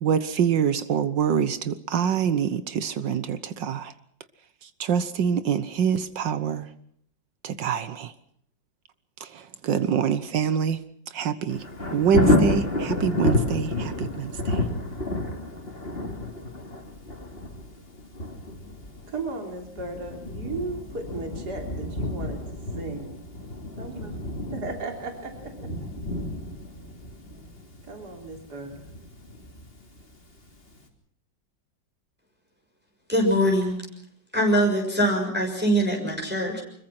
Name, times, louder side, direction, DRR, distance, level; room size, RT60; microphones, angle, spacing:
voice 1, 0.0-3.9 4.8-6.7 7.4-8.1 9.2-10.8 11.1-11.6 11.9-14.6, right 7 dB, 75° right, 13 dB, 1.7 m, -25 dB
Thunder, 11.5-30.3 30.7-30.8, left 2 dB, 30° left, 3.5 m, -30 dB
voice 2, 19.1-22.4 22.8-23.1 23.8-24.2 24.4-25.7 27.9-28.8, right 3 dB, 60° right, 3 dB, 4.0 m, -35 dB
voice 3, 33.1-33.8 34.3-36.6, equal, 5° right, 0 dB, 6.4 m, -22 dB
25.5 x 22.0 x 6.0 m, 0.66 s
omnidirectional pair, 2.0 m